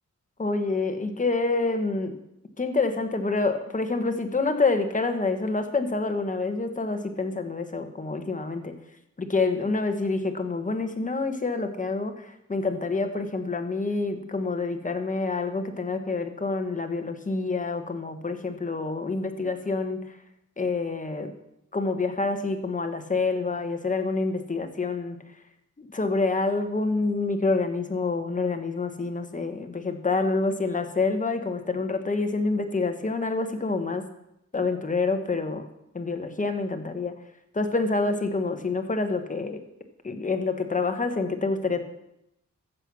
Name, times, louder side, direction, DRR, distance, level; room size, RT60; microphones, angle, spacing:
voice 1, 0.4-2.2 2.6-8.7 9.2-20.0 20.6-21.3 21.7-25.2 25.8-34.0 34.5-35.7 35.9-37.1 37.5-39.6 40.0-41.8, left 3 dB, 25° left, 6 dB, 1.4 m, -27 dB
14.5 x 7.9 x 6.3 m, 0.83 s
wide cardioid pair, 120°, 31 cm